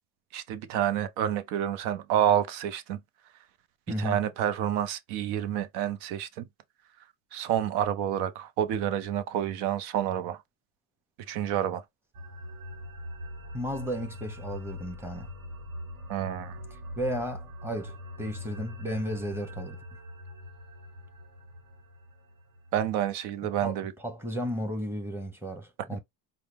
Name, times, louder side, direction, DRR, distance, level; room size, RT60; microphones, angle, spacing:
voice 1, 0.3-3.0 4.0-6.5 7.3-10.4 11.3-11.8 16.1-16.6 22.7-23.9, right 10 dB, 75° right, 0.7 m, -28 dB
voice 2, 3.9-4.2 13.5-15.3 16.7-19.8 23.4-26.0, equal, 5° right, 1.0 m, -34 dB
sound 1, 12.1-22.9, left 1 dB, 60° right, 1.5 m, -42 dB
5.5 x 2.1 x 3.4 m
cardioid pair, 120°, 39 cm